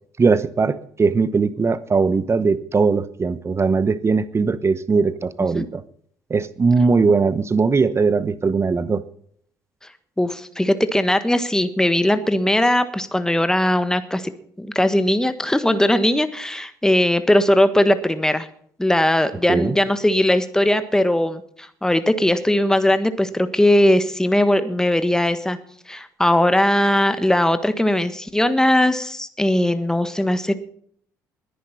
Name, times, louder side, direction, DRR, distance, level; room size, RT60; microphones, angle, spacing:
voice 1, 0.2-5.8 6.3-9.0 19.5-19.7, right 4 dB, 30° right, 16 dB, 1.0 m, -19 dB
voice 2, 10.2-14.3 14.6-18.5 18.8-21.4 21.8-25.6 25.9-30.6, left 1 dB, 5° left, 11 dB, 1.5 m, -19 dB
21.0 x 10.0 x 4.2 m, 0.63 s
figure-of-eight pair, 50°, 9 cm